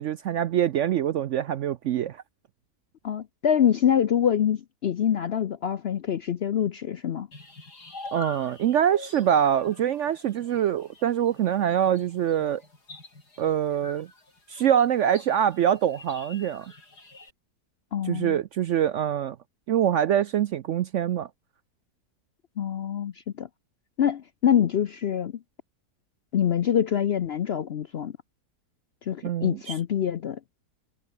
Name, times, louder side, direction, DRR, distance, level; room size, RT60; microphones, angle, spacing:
voice 1, 0.0-2.2 8.1-12.6 13.4-14.1 14.5-16.7 18.0-19.4 19.7-21.3 29.2-29.8, right 10 dB, 70° right, 0.7 m, -24 dB
voice 2, 3.0-7.3 17.9-18.4 22.6-23.5 24.0-25.3 26.3-28.1 29.1-30.4, left 9 dB, 60° left, 0.7 m, -25 dB
sound 1, 7.3-17.3, left 2 dB, 85° left, 6.1 m, -46 dB
omnidirectional pair, 1.7 m